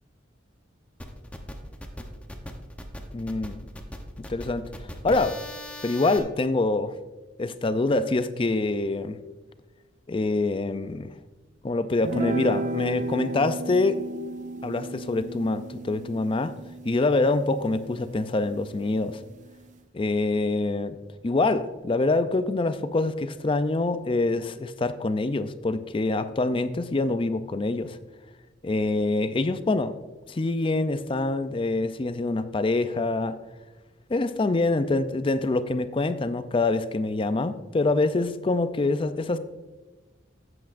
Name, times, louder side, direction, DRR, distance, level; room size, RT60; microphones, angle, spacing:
sound 1, 1.0-6.2, left 1 dB, 5° left, 0.8 m, -39 dB
voice 1, 3.1-3.7 4.3-4.7 5.0-5.4 5.8-6.9 7.4-9.2 10.1-11.1 11.6-14.0 14.6-16.5 16.9-19.2 19.9-21.0 21.2-28.0 28.6-29.9 30.3-33.4 34.1-39.4, left 2 dB, 25° left, 11 dB, 0.4 m, -25 dB
sound 2, 12.0-18.6, right 2 dB, 40° right, 0.4 m, -34 dB
13.0 x 7.9 x 2.5 m, 1.2 s
head